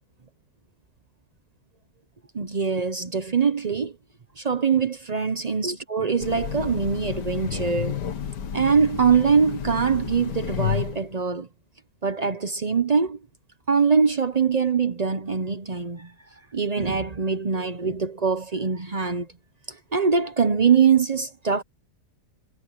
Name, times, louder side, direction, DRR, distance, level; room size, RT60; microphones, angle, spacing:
voice 1, 2.3-3.9 4.4-8.0 8.5-11.5 12.0-13.2 13.7-16.1 16.5-19.3 19.7-21.6, right 6 dB, 40° right, 0.5 m, -23 dB
Train, 6.2-11.1, left 9 dB, 75° left, 1.9 m, -31 dB
omnidirectional pair, 1.8 m